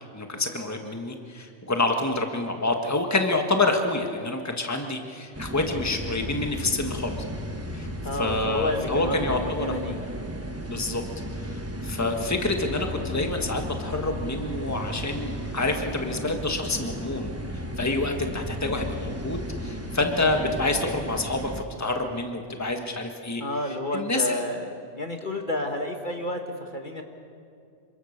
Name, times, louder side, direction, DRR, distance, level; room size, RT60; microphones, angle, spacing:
voice 1, 0.1-7.2 7.7-10.2 10.7-11.0 11.4-24.4, left 2 dB, 15° left, 4 dB, 1.6 m, -28 dB
sound 1, 5.3-21.6, equal, 10° right, 1.2 m, -34 dB
voice 2, 8.0-9.9 23.4-27.0, left 1 dB, 40° left, 4 dB, 1.6 m, -30 dB
27.5 x 24.0 x 6.7 m, 2.5 s
omnidirectional pair, 1.2 m